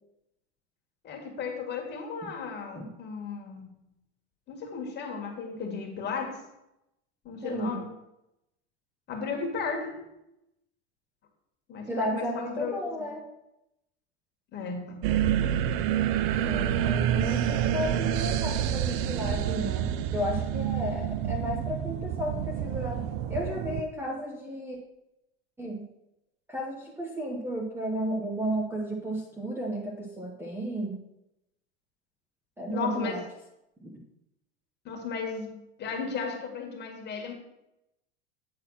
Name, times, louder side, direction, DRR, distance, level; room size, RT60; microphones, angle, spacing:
voice 1, 1.0-3.7 4.5-6.4 7.2-7.9 9.1-10.0 11.7-12.3 12.6-13.1 14.5-15.0 32.7-33.2 34.8-37.3, left 5 dB, 30° left, 2 dB, 2.0 m, -35 dB
voice 2, 7.4-7.8 11.9-13.3 16.4-19.9 20.1-23.0 23.3-24.8 25.6-25.8 26.5-31.0 32.6-33.2 33.8-34.0, equal, 5° right, -1 dB, 1.0 m, -33 dB
sound 1, 15.0-23.8, right 10 dB, 40° right, 0.4 m, -28 dB
8.8 x 4.1 x 5.7 m, 0.87 s
supercardioid pair, 120°, 34 cm